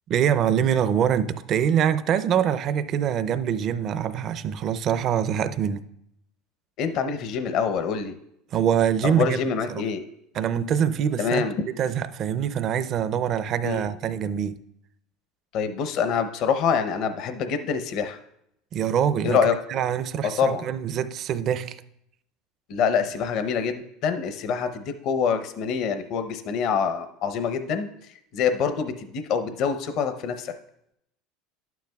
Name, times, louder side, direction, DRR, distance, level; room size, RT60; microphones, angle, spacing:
voice 1, 0.1-5.8 8.5-9.4 9.7-9.8 10.3-11.4 11.8-14.6 18.7-19.4 19.7-21.8, right 9 dB, 45° right, 0.5 m, -24 dB
voice 2, 6.8-8.2 9.0-10.0 11.2-11.6 13.6-13.9 15.5-18.2 19.2-19.5 20.2-20.6 22.7-27.9 28.3-30.5, left 6 dB, 55° left, 0.7 m, -25 dB
11.5 x 9.2 x 2.3 m
supercardioid pair, 105°, 0 cm